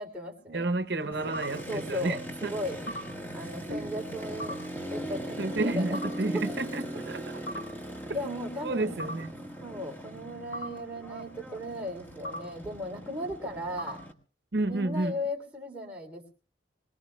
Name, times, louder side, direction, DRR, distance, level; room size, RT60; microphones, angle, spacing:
voice 1, 0.0-0.7 1.2-1.3 1.7-2.8 3.3-4.6 4.9-6.0 6.3-6.4 8.1-9.1 9.4-14.0 14.7-16.3, left 1 dB, 10° right, 3.2 m, -36 dB
voice 2, 0.5-2.5 3.7-3.8 5.4-7.6 8.6-9.3 14.5-15.2, right 2 dB, 65° right, 0.8 m, -31 dB
Motorcycle, 1.1-14.1, right 1 dB, 10° left, 1.5 m, -40 dB
sound 1, 1.3-1.5 2.9-3.0 4.4-4.5 5.9-6.1 7.5-7.6 9.0-9.1 10.5-10.7 12.2-12.4 13.8-13.9, left 1 dB, 70° left, 4.9 m, -35 dB
25.5 x 19.0 x 2.3 m
head